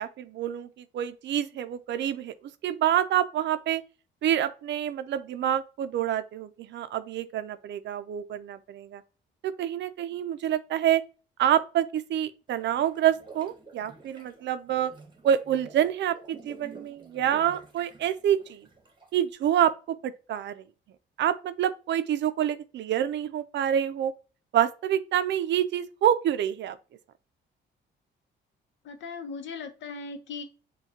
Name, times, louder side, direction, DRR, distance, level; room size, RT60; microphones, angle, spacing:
voice 1, 0.0-2.3 2.6-3.8 4.2-9.0 9.4-11.0 11.4-14.9 15.2-18.7 19.1-20.6 21.2-24.1 24.5-26.8, right 10 dB, 65° right, 0.5 m, -27 dB
sound 1, 12.5-19.2, right 3 dB, 25° right, 1.0 m, -50 dB
voice 2, 28.8-30.4, left 4 dB, 70° left, 0.7 m, -38 dB
5.6 x 2.3 x 2.8 m
cardioid pair, 90°, 20 cm